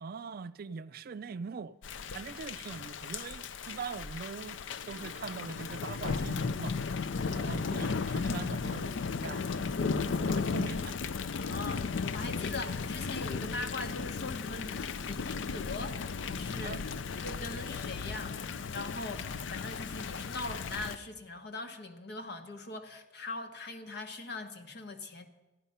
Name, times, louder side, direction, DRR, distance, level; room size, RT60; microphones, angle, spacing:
voice 1, 0.0-1.7 2.1-4.6 4.9-6.8 7.3-11.0 16.6-16.8, right 5 dB, 55° right, 0.4 m, -42 dB
Thunder / Rain, 1.8-21.0, left 5 dB, 80° left, 0.5 m, -35 dB
voice 2, 7.1-7.6 11.4-16.0 16.2-16.8 17.2-25.3, left 2 dB, 60° left, 1.2 m, -41 dB
14.5 x 11.5 x 5.6 m
head